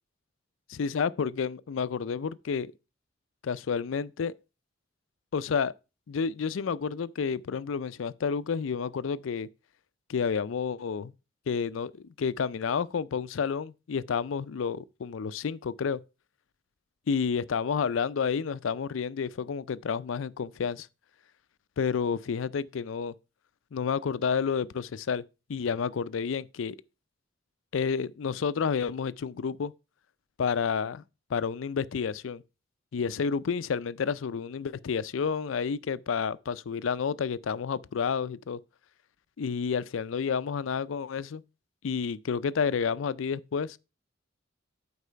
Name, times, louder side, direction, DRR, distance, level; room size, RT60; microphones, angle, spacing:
voice 1, 0.7-2.7 3.4-4.3 5.3-5.7 6.1-9.5 10.1-11.1 11.5-11.9 12.2-16.0 17.1-20.9 21.8-23.1 23.7-25.2 25.5-26.8 27.7-29.7 30.4-31.0 31.3-32.4 32.9-38.6 39.4-41.4 41.8-43.8, left 6 dB, 85° left, 0.4 m, -30 dB
8.2 x 4.8 x 5.6 m
head